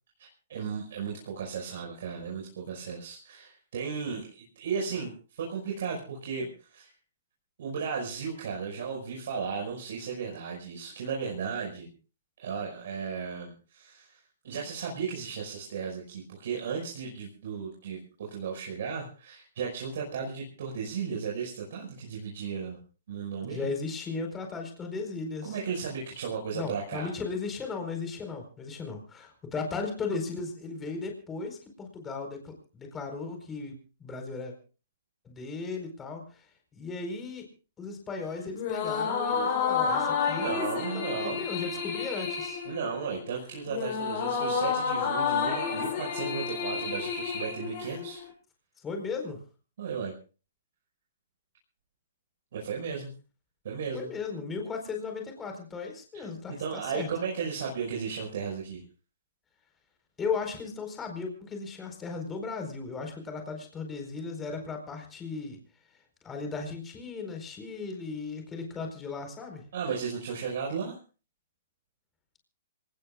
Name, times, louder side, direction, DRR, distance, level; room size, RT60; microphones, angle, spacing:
voice 1, 0.2-6.9 7.6-11.9 12.4-14.2 14.4-22.8 23.1-23.7 25.4-27.1 40.3-41.4 42.6-48.2 49.8-50.1 52.5-53.1 53.6-54.1 56.1-56.3 56.6-58.8 69.7-71.0, right 6 dB, 60° right, -2 dB, 5.5 m, -35 dB
voice 2, 23.4-25.6 26.5-34.5 35.2-37.4 37.8-42.6 48.8-49.4 53.9-57.1 60.2-65.6 66.2-69.6, left 4 dB, 15° left, 4 dB, 4.5 m, -36 dB
sound 1, 38.5-48.3, left 6 dB, 45° left, 7.8 m, -30 dB
26.5 x 18.5 x 2.4 m, 0.36 s
hypercardioid pair, 125°, 0 cm